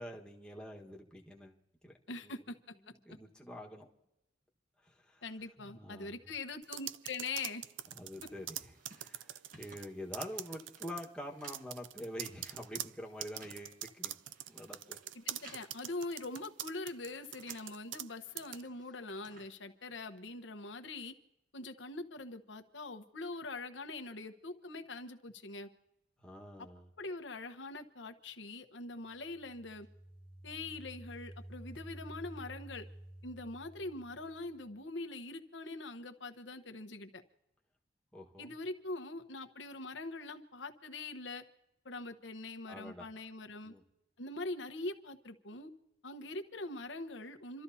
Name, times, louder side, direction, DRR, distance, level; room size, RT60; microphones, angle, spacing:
voice 1, 0.0-1.5 1.8-1.9 2.2-2.3 2.8-3.9 4.8-5.2 5.6-6.2 7.9-14.1 14.5-15.0 26.2-26.9 38.1-38.5 42.7-43.1 43.6-43.8, left 1 dB, 5° left, -1 dB, 1.5 m, -46 dB
voice 2, 2.1-2.6 5.2-7.6 15.1-21.1 21.5-25.7 26.6-26.7 27.0-29.9 30.4-32.9 33.2-37.2 38.4-41.4 41.8-43.7 44.2-45.7 46.0-47.6, left 2 dB, 80° left, 6 dB, 1.1 m, -43 dB
sound 1, 6.6-9.9 10.1-11.1 11.5-18.1 18.4-18.6, right 13 dB, 85° right, 0.4 m, -43 dB
sound 2, 7.8-17.8 18.1-20.2, right 2 dB, 50° right, 1.6 m, -62 dB
sound 3, 29.1-34.7, right 1 dB, 25° right, 2.5 m, -51 dB
28.5 x 13.0 x 2.8 m, 0.87 s
head